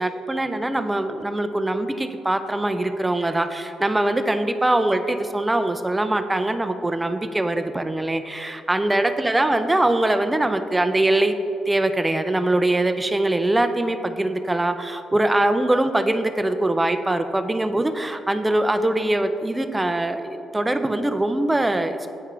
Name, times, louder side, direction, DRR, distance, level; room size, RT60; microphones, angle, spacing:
voice 1, 0.0-11.4 11.7-22.1, right 1 dB, 15° right, 9 dB, 0.4 m, -22 dB
8.3 x 4.7 x 3.4 m, 2.6 s
cardioid pair, 90°, 0 cm